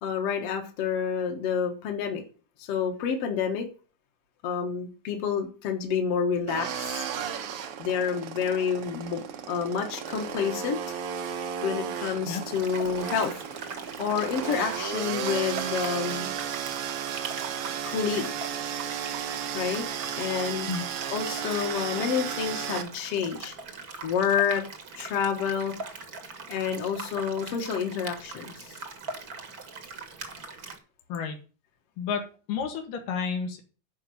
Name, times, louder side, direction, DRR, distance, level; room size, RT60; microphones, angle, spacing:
voice 1, 0.0-2.2 2.6-3.7 4.4-7.1 7.8-11.0 11.6-13.4 14.0-16.3 17.9-18.3 19.5-19.9 20.2-20.7 21.1-23.6 24.0-24.6 24.9-25.7 26.5-28.8, left 7 dB, 55° left, 3 dB, 2.1 m, -29 dB
sound 1, 6.5-22.8, right 8 dB, 65° right, 1.4 m, -34 dB
sound 2, 12.5-30.8, right 4 dB, 45° right, 1.2 m, -41 dB
voice 2, 31.1-31.4 32.0-33.6, left 6 dB, 80° left, 4 dB, 3.5 m, -31 dB
10.5 x 5.2 x 7.7 m, 0.37 s
omnidirectional pair, 3.7 m